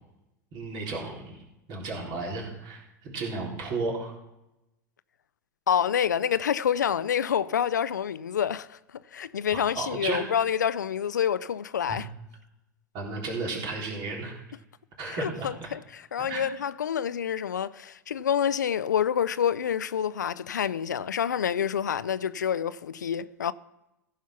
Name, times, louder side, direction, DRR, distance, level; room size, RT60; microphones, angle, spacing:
voice 1, 0.5-1.4 1.7-4.1 9.5-10.3 11.9-12.0 12.9-14.3 15.0-15.5 16.2-16.5, right 3 dB, 50° right, 3.9 m, -33 dB
voice 2, 5.7-8.8 9.1-12.1 15.0-23.5, left 8 dB, 85° left, 0.4 m, -27 dB
15.0 x 5.6 x 5.9 m
hypercardioid pair, 85°, 9 cm